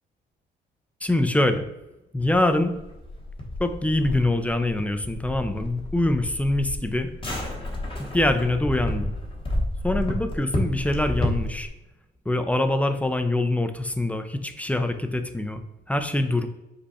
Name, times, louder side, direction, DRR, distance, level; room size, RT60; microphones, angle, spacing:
voice 1, 1.0-1.7 2.1-2.8 3.6-7.1 8.0-9.1 9.8-11.7 12.3-15.6 15.9-16.5, left 1 dB, 5° left, 8 dB, 0.4 m, -24 dB
sound 1, 2.2-11.7, left 1 dB, 25° left, 1.0 m, -31 dB
5.2 x 2.3 x 4.1 m, 0.98 s
cardioid pair, 90°, 20 cm